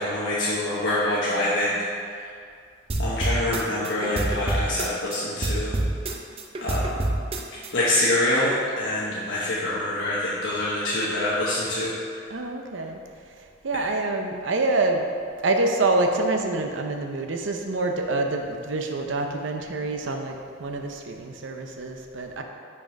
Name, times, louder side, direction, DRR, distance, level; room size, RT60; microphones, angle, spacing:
voice 1, 0.0-1.8 3.0-5.7 6.6-6.9 7.7-11.9, left 1 dB, 80° left, -8 dB, 1.1 m, -25 dB
sound 1, 2.9-5.2 5.4-7.7, right 1 dB, 30° right, 0.5 m, -27 dB
voice 2, 12.3-13.0 13.6-15.1 15.4-22.4, right 2 dB, 80° right, 3 dB, 0.6 m, -26 dB
6.0 x 4.8 x 5.1 m, 2.3 s
head